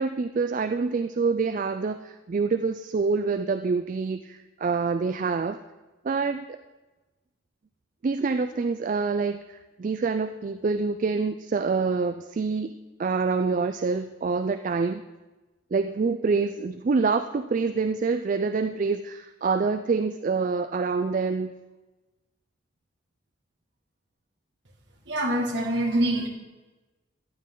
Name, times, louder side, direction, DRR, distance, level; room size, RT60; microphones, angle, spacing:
voice 1, 0.0-5.6 6.0-6.6 8.0-15.0 15.7-21.5, right 4 dB, 40° right, 9 dB, 0.3 m, -26 dB
voice 2, 25.1-26.3, right 1 dB, 60° right, 0 dB, 2.0 m, -25 dB
14.0 x 9.7 x 3.9 m, 1.2 s
head